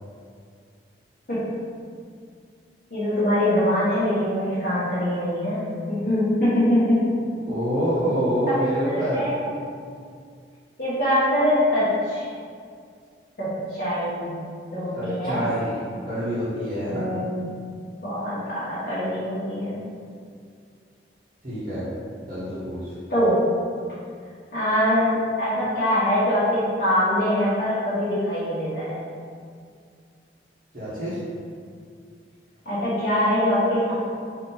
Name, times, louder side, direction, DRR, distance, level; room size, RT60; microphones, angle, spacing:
voice 1, 1.3-1.6 2.9-7.1 8.9-9.6 10.8-12.2 13.4-14.4 14.7-15.5 16.9-17.4 18.0-19.8 23.1-23.5 24.5-29.0 32.6-33.9, left 1 dB, 55° left, -13 dB, 1.2 m, -23 dB
voice 2, 7.5-9.2 14.9-17.0 21.4-21.9 22.3-22.9 30.7-31.2, equal, 45° right, -13 dB, 1.3 m, -26 dB
4.2 x 3.0 x 4.0 m, 2.2 s
head